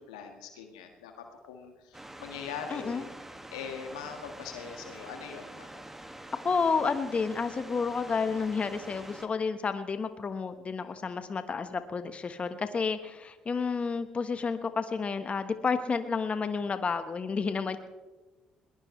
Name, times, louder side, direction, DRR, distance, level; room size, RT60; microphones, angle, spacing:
voice 1, 0.0-3.1 3.5-5.8 10.8-11.2 17.5-17.6, left 7 dB, 90° left, 5 dB, 1.8 m, -42 dB
sound 1, 1.9-9.3, right 1 dB, 10° right, 2.0 m, -46 dB
voice 2, 2.7-3.1 6.4-17.8, left 5 dB, 40° left, 9 dB, 1.3 m, -30 dB
21.5 x 20.0 x 3.3 m, 1.2 s
hypercardioid pair, 55°, 3 cm